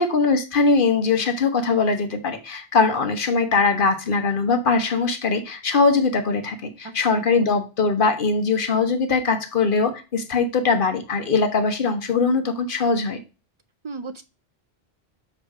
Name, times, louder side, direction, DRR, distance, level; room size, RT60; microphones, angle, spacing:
voice 1, 0.0-13.2, left 4 dB, 55° left, 7 dB, 1.1 m, -21 dB
voice 2, 6.8-7.2 13.8-14.2, right 4 dB, 55° right, 10 dB, 0.3 m, -35 dB
6.8 x 3.2 x 4.7 m, 0.30 s
omnidirectional pair, 1.0 m